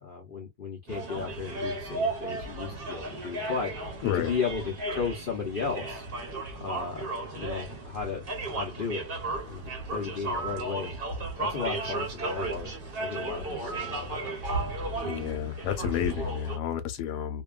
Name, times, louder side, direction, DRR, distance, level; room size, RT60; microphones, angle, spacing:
voice 1, 0.0-6.0 6.6-8.2 8.5-9.0 9.5-10.9 11.4-12.7 13.0-14.3, left 5 dB, 60° left, 0.5 m, -35 dB
sound 1, 0.9-16.6, right 2 dB, 40° right, 0.9 m, -34 dB
voice 2, 4.0-4.3 15.0-17.4, left 10 dB, 75° left, 1.1 m, -30 dB
sound 2, 10.3-10.7 13.7-14.1, right 8 dB, 70° right, 1.1 m, -38 dB
2.7 x 2.3 x 2.3 m
omnidirectional pair, 1.8 m